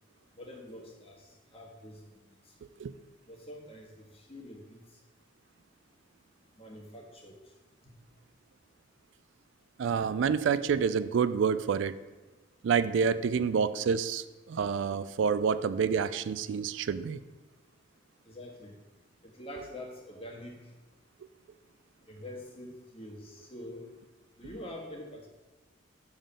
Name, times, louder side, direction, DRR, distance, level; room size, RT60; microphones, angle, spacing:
voice 1, 0.4-1.2 1.5-2.0 3.3-4.8 6.6-7.4 18.2-18.7 19.2-20.7 22.1-23.8 24.4-25.3, left 1 dB, 30° left, -1 dB, 1.5 m, -45 dB
voice 2, 9.8-11.9 12.6-17.2, right 6 dB, 75° right, 14 dB, 0.3 m, -28 dB
7.1 x 3.8 x 6.5 m, 1.2 s
head